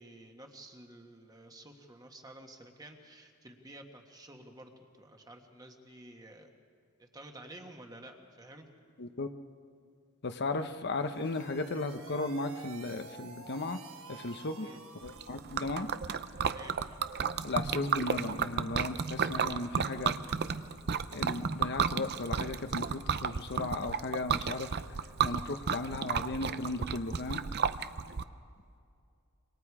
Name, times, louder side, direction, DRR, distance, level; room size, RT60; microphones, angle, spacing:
voice 1, 0.0-6.5 7.0-8.7 14.6-14.8 16.5-16.8, right 1 dB, 20° right, 3 dB, 1.6 m, -51 dB
voice 2, 10.2-13.8 14.1-14.7 15.0-15.9 17.4-20.2 21.1-24.8 25.2-27.4, left 2 dB, 50° left, 7 dB, 0.9 m, -36 dB
sound 1, 10.9-15.7, right 5 dB, 70° right, 1.3 m, -50 dB
Liquid, 15.1-28.2, right 6 dB, 50° right, 0.6 m, -33 dB
27.0 x 24.5 x 4.9 m, 2.3 s
head